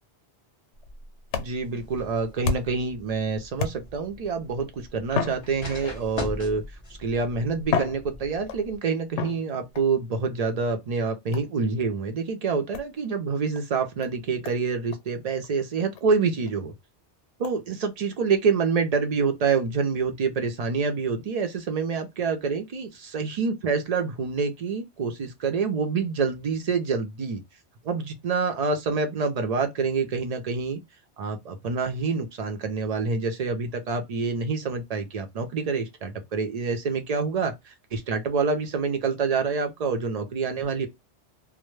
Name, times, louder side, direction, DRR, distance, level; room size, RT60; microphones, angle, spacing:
sound 1, 0.7-2.9 3.6-4.2 5.1-6.2 7.0-7.1 7.6-8.7 9.2-9.9 11.3-11.6 12.7-12.9 13.5-13.6 14.0-14.1 14.4-14.6 14.9-15.0 15.4-15.5 16.0-16.1 16.5-16.6 17.4-17.6, left 5 dB, 85° left, 0.9 m, -32 dB
voice 1, 1.4-6.6 7.0-16.7 17.4-27.4 27.8-30.8 31.2-40.9, right 5 dB, 60° right, 0.4 m, -27 dB
sound 2, 1.6-8.8, left 2 dB, 30° left, 0.6 m, -41 dB
2.1 x 2.0 x 3.0 m
omnidirectional pair, 1.2 m